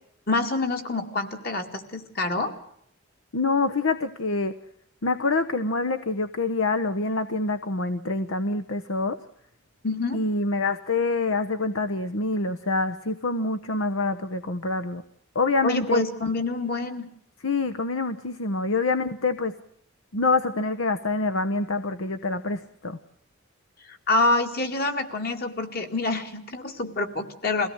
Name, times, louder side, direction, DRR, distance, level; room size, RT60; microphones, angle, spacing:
voice 1, 0.3-2.5 9.8-10.2 15.6-17.1 23.9-27.7, left 2 dB, 45° left, 5 dB, 2.4 m, -26 dB
voice 2, 3.3-4.5 5.0-9.2 10.1-15.0 15.3-16.0 17.4-19.5 20.1-23.0, left 3 dB, 75° left, 9 dB, 1.0 m, -26 dB
23.0 x 17.0 x 7.9 m, 0.70 s
head